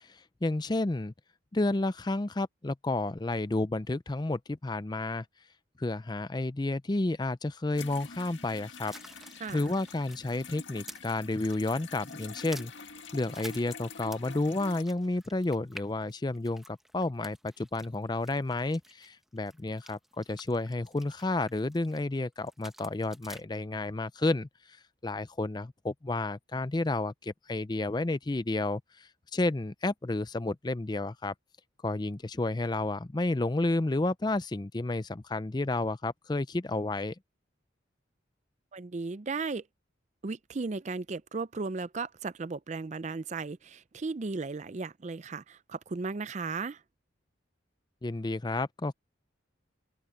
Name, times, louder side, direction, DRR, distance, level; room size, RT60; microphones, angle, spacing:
voice 1, 0.1-1.1 1.5-5.2 5.8-8.9 9.5-12.7 13.1-24.5 25.0-31.3 31.8-37.1 48.0-48.9, left 2 dB, 20° left, 0.5 m, -31 dB
sound 1, 7.8-14.8, left 5 dB, 70° left, 2.0 m, -46 dB
dripping splish splash blood smash flesh murder bone break, 8.9-11.1 11.4-14.4 14.7-22.0 22.4-23.4, right 1 dB, ahead, 0.9 m, -50 dB
voice 2, 9.4-9.8 38.7-39.7 40.2-46.8, right 4 dB, 35° right, 0.4 m, -36 dB
open air
head